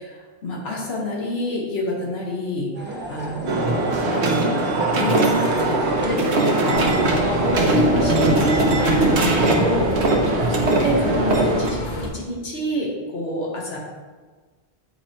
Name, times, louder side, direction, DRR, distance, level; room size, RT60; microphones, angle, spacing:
voice 1, 0.0-4.2 5.0-9.9 10.2-13.8, left 1 dB, 75° left, -3 dB, 1.3 m, -28 dB
sound 1, 2.7-8.0, right 1 dB, 10° right, 0.7 m, -34 dB
sound 2, 3.5-11.7, right 2 dB, 85° right, 1.1 m, -20 dB
sound 3, 6.7-12.1, left 1 dB, 50° left, 1.1 m, -29 dB
8.3 x 2.9 x 4.4 m, 1.4 s
omnidirectional pair, 1.1 m